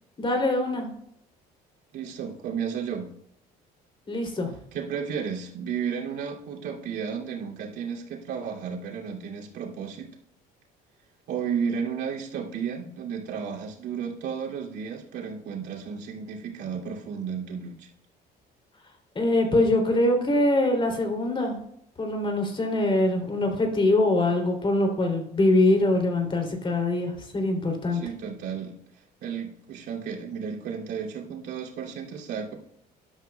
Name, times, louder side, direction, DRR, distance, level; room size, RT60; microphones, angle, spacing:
voice 1, 0.2-0.9 4.1-4.5 19.1-21.6 22.0-28.0, left 1 dB, 30° left, 3 dB, 3.0 m, -23 dB
voice 2, 1.9-3.1 4.7-10.1 11.3-17.9 27.9-28.7 29.2-32.5, right 7 dB, 80° right, -2 dB, 2.7 m, -33 dB
12.5 x 11.5 x 2.3 m, 0.73 s
cardioid pair, 110°, 17 cm